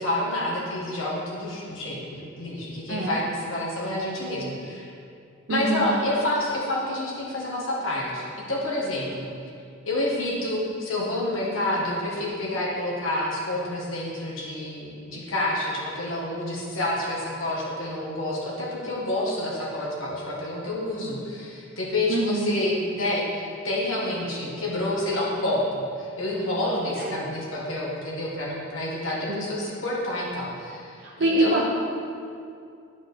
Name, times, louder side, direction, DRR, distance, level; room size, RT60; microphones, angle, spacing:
voice 1, 0.0-4.9 5.5-9.3 9.9-31.7, left 1 dB, 75° left, -4 dB, 1.8 m, -28 dB
voice 2, 5.5-5.9 22.1-22.6 27.0-27.2 29.3-29.4 31.0-31.6, right 2 dB, 60° right, -3 dB, 0.7 m, -25 dB
10.5 x 4.9 x 4.0 m, 2.4 s
head